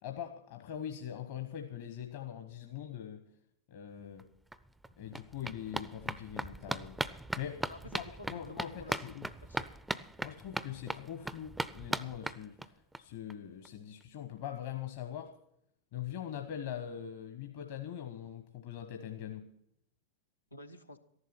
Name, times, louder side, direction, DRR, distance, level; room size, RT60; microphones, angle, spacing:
voice 1, 0.0-3.2 3.7-4.3 5.0-7.0 7.4-7.6 8.3-9.3 10.2-15.3 15.9-19.4, left 10 dB, 50° left, 6 dB, 1.2 m, -42 dB
sound 1, 4.2-4.3 4.5-13.0 13.3-13.4 13.7-13.8 14.0-14.1, right 1 dB, 5° right, 0.5 m, -39 dB
voice 2, 7.7-9.7 20.5-21.0, left 2 dB, 85° left, 5 dB, 1.1 m, -50 dB
14.0 x 11.5 x 5.9 m, 0.73 s
figure-of-eight pair, 90°, 0 cm